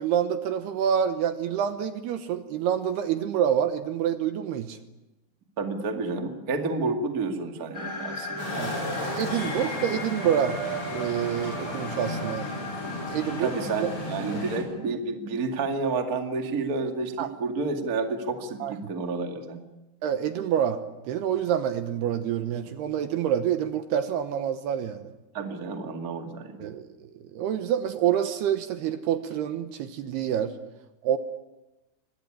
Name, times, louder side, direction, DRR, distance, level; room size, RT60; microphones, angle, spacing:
voice 1, 0.0-4.8 8.6-8.8 9.0-10.6 10.9-12.5 13.1-13.5 13.8-13.9 14.3-14.4 17.2-17.3 18.6-18.7 20.0-25.1 26.6-26.9 27.3-30.5 31.0-31.2, right 9 dB, 75° right, 9 dB, 2.7 m, -27 dB
voice 2, 5.6-8.5 13.4-19.6 25.3-26.7, right 3 dB, 40° right, 4 dB, 1.3 m, -30 dB
sound 1, 7.7-14.8, equal, 5° left, 3.4 m, -36 dB
sound 2, 8.4-14.6, left 1 dB, 30° left, 8.4 m, -34 dB
24.5 x 20.0 x 10.0 m, 1.0 s
omnidirectional pair, 5.4 m